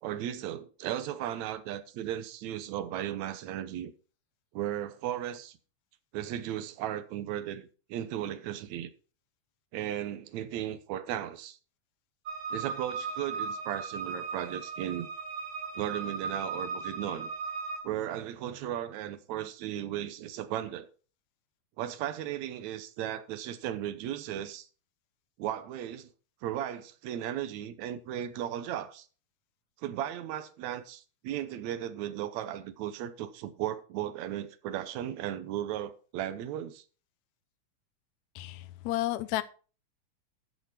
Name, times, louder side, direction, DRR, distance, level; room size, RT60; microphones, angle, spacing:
voice 1, 0.0-3.9 4.5-5.6 6.1-8.9 9.7-11.6 12.5-15.1 15.8-17.3 17.8-20.9 21.8-24.7 25.4-26.1 26.4-29.1 29.8-36.8, right 11 dB, 75° right, 2.1 m, -36 dB
sound 1, 12.3-17.8, right 5 dB, 55° right, 5.7 m, -37 dB
voice 2, 38.4-39.4, left 15 dB, 75° left, 1.9 m, -32 dB
13.0 x 6.9 x 4.3 m
omnidirectional pair, 3.6 m